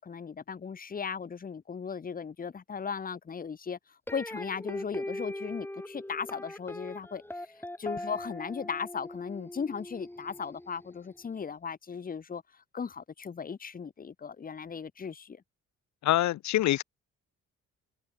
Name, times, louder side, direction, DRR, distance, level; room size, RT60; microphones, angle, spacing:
voice 1, 0.0-3.8 4.1-7.5 7.8-12.4 12.7-15.4, left 6 dB, 30° left, 1.0 m, -37 dB
sound 1, 4.1-11.2, left 1 dB, 5° left, 5.2 m, -41 dB
voice 2, 16.0-16.8, left 14 dB, 70° left, 0.7 m, -25 dB
cardioid pair, 90°, 30 cm